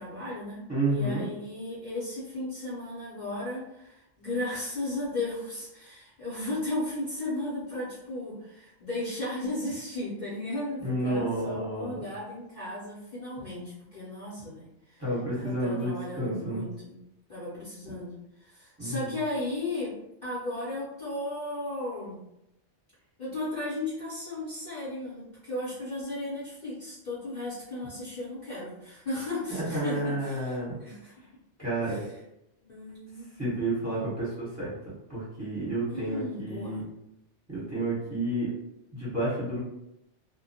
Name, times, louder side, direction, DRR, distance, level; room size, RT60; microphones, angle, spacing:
voice 1, 0.0-15.0 15.3-17.0 17.3-20.0 20.2-22.2 23.2-31.1 31.9-32.0 32.6-33.4 33.8-34.1 35.9-36.8, left 2 dB, 45° left, -10 dB, 0.7 m, -35 dB
voice 2, 0.7-1.2 10.8-12.0 15.0-16.6 18.8-19.1 29.6-30.8 31.6-32.0 33.4-34.7 35.1-36.8 37.5-38.5 38.9-39.6, right 1 dB, 15° right, -9 dB, 0.9 m, -30 dB
2.2 x 2.1 x 2.7 m, 0.85 s
omnidirectional pair, 1.3 m